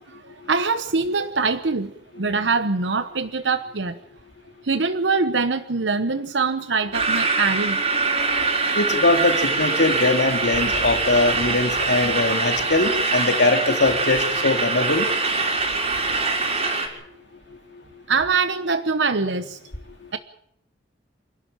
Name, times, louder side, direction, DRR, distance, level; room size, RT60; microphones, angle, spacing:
voice 1, 0.0-4.0 4.6-7.8 18.1-19.6 20.1-20.2, right 4 dB, 85° right, 10 dB, 1.0 m, -23 dB
sound 1, 6.9-16.9, right 3 dB, 35° right, 4.8 m, -23 dB
voice 2, 8.7-15.1, left 2 dB, 70° left, 5 dB, 2.6 m, -21 dB
27.5 x 12.0 x 8.8 m, 0.73 s
head